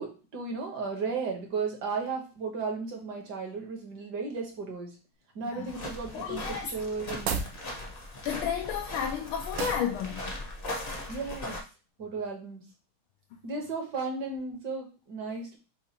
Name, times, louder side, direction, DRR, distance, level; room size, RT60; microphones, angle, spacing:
voice 1, 0.0-4.9 5.3-7.3 11.1-11.6 12.0-12.6 13.4-15.6, right 4 dB, 60° right, 1.6 m, -35 dB
sound 1, 5.7-11.6, left 1 dB, 40° left, 0.8 m, -39 dB
voice 2, 6.1-6.7 8.2-10.3, left 8 dB, 85° left, 1.4 m, -32 dB
sound 2, 7.2-7.6 9.6-9.9, right 5 dB, 85° right, 1.5 m, -31 dB
7.0 x 2.5 x 2.8 m
omnidirectional pair, 2.2 m